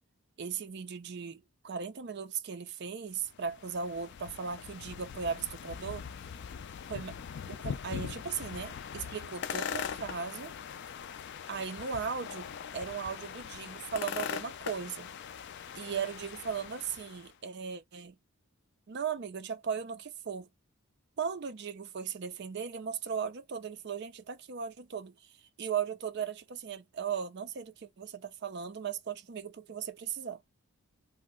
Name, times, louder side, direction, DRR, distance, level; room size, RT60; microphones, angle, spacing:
voice 1, 0.4-6.0 6.9-7.1 7.5-10.5 11.5-15.1 15.7-18.2 18.9-20.5 21.2-25.2 25.6-30.4, right 6 dB, 50° right, 0.4 m, -37 dB
sound 1, 3.3-17.3, left 7 dB, 55° left, 0.3 m, -41 dB
2.8 x 2.1 x 3.6 m
head